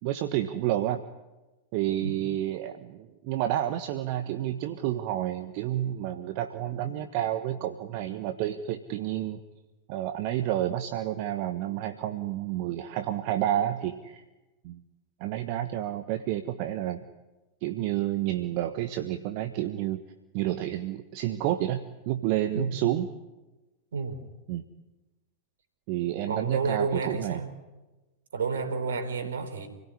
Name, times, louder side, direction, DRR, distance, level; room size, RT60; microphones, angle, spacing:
voice 1, 0.0-1.0 1.7-9.4 9.9-14.2 14.6-14.8 15.2-17.0 17.6-20.0 20.3-23.1 24.5-24.6 25.9-27.4, right 12 dB, 45° right, 9 dB, 1.4 m, -30 dB
voice 2, 22.5-22.9 23.9-24.2 26.3-27.5 28.3-29.7, right 4 dB, 65° right, 8 dB, 4.2 m, -30 dB
29.0 x 17.5 x 9.8 m, 1.1 s
figure-of-eight pair, 90°, 0 cm